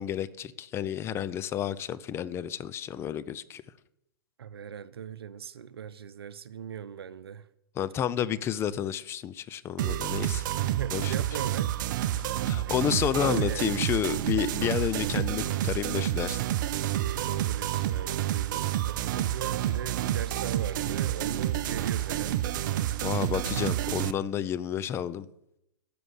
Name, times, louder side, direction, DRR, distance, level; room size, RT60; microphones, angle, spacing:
voice 1, 0.0-3.6 7.8-10.4 10.9-11.1 12.4-16.4 23.0-25.3, left 9 dB, 20° left, 0.5 m, -30 dB
voice 2, 4.4-7.4 10.6-11.7 12.7-12.8 13.2-13.7 17.1-22.6, right 8 dB, 85° right, 0.8 m, -39 dB
sound 1, 9.8-24.1, right 12 dB, 55° right, 0.7 m, -29 dB
12.5 x 6.9 x 8.0 m
hypercardioid pair, 135°, 13 cm